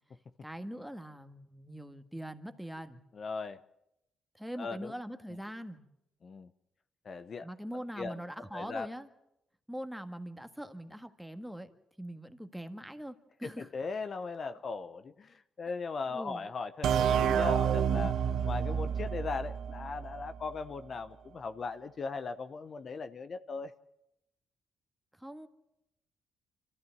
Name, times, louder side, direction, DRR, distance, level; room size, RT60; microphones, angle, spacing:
voice 1, 0.4-3.0 4.3-5.8 7.4-9.1 9.7-11.7 12.0-13.7 16.1-16.5 25.1-25.5, equal, 5° right, 8 dB, 1.7 m, -42 dB
voice 2, 3.1-3.6 4.6-4.9 6.2-6.5 7.0-7.5 8.0-8.2 8.5-8.9 13.4-18.2 18.4-23.7, left 4 dB, 45° left, 10 dB, 0.8 m, -38 dB
sound 1, 16.8-20.4, right 8 dB, 75° right, 1.1 m, -29 dB
25.5 x 14.5 x 9.1 m, 0.84 s
cardioid pair, 90°, 0 cm